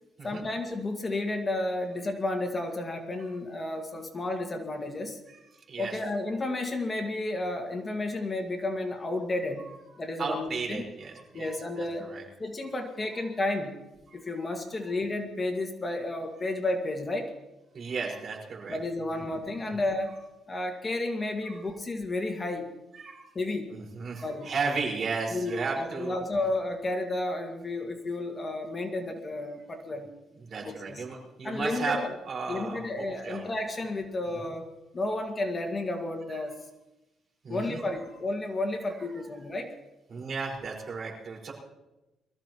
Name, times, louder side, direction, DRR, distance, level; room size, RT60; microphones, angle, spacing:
voice 1, 0.2-5.2 5.8-9.7 10.0-10.8 11.3-12.1 12.4-13.8 14.1-17.3 18.7-20.2 20.5-22.7 23.4-23.7 24.2-24.5 25.3-30.1 30.6-31.0 31.4-32.2 32.5-34.7 34.9-36.5 37.5-39.7, left 2 dB, 30° left, 4 dB, 1.9 m, -32 dB
voice 2, 5.3-6.0 8.1-8.2 9.8-12.2 12.7-13.3 14.1-14.5 14.7-14.9 16.4-16.5 17.7-18.8 19.1-19.3 19.6-19.8 21.4-21.7 22.9-23.3 23.7-26.2 26.4-26.5 30.3-33.5 34.2-34.4 36.3-36.5 37.4-38.1 38.9-39.3 40.1-41.5, right 4 dB, 50° right, -1 dB, 5.1 m, -36 dB
23.0 x 14.5 x 3.1 m, 0.99 s
cardioid pair, 90°, 0 cm